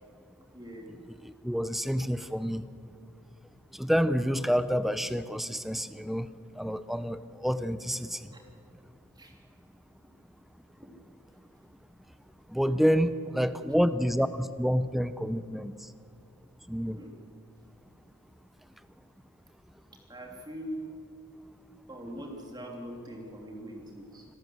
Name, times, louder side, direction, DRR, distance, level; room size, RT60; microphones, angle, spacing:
voice 1, 0.5-0.9 8.3-8.4 9.2-9.3 10.8-10.9 16.9-17.1 20.1-20.8 21.9-24.2, equal, 20° right, 1 dB, 3.1 m, -42 dB
voice 2, 1.2-2.6 3.7-6.3 6.6-8.3 12.5-15.7 16.7-17.0, equal, ahead, 13 dB, 0.6 m, -28 dB
26.0 x 13.0 x 7.7 m, 2.3 s
head